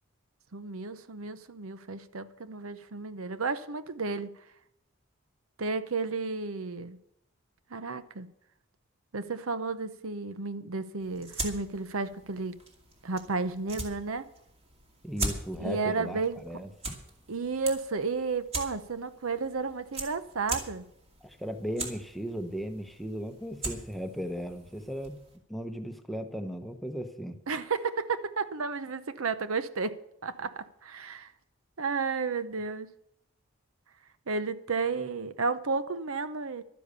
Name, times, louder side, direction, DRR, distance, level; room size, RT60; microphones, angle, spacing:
voice 1, 0.5-4.3 5.6-7.0 7.7-8.3 9.1-12.5 13.0-14.3 15.6-16.6 17.3-20.8 27.5-31.3 31.8-32.9 34.3-36.6, right 4 dB, 80° right, 0.8 m, -32 dB
sound 1, 11.0-25.4, right 2 dB, 30° right, 2.3 m, -41 dB
voice 2, 15.0-16.7 21.2-25.2 25.5-27.4, equal, ahead, 0.9 m, -36 dB
12.0 x 10.0 x 6.8 m
head